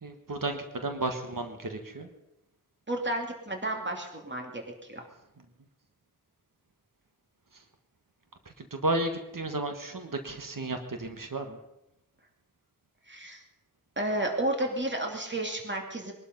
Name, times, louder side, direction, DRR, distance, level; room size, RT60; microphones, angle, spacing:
voice 1, 0.0-2.1 7.5-7.6 8.4-11.6, right 2 dB, 85° right, 6 dB, 1.6 m, -33 dB
voice 2, 2.9-5.1 13.1-13.4 14.0-16.1, right 1 dB, 35° right, 2 dB, 2.8 m, -32 dB
22.0 x 12.0 x 5.4 m, 0.90 s
wide cardioid pair, 55°, 32 cm